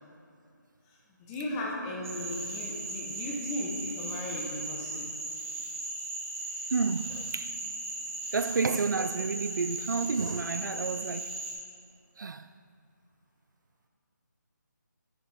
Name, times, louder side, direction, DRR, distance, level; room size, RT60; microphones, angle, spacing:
voice 1, 0.9-5.1, left 1 dB, 10° left, 0.7 m, -36 dB
Cricket / Frog, 2.0-11.5, right 2 dB, 45° right, 1.6 m, -37 dB
voice 2, 6.7-7.6 8.3-11.4 12.2-12.5, right 4 dB, 80° right, 0.4 m, -30 dB
10.5 x 5.6 x 3.4 m
figure-of-eight pair, 165°, 10 cm